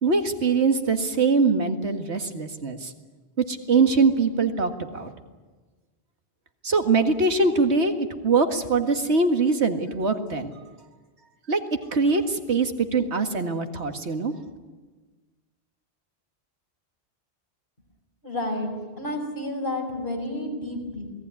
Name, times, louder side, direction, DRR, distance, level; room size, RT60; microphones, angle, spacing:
voice 1, 0.0-2.9 3.5-5.1 6.6-10.5 11.5-11.6 11.9-14.3, right 4 dB, 85° right, 6 dB, 2.1 m, -23 dB
voice 2, 18.2-18.7 19.0-21.1, left 1 dB, 50° left, 2 dB, 5.7 m, -30 dB
28.0 x 19.0 x 9.7 m, 1.3 s
omnidirectional pair, 1.1 m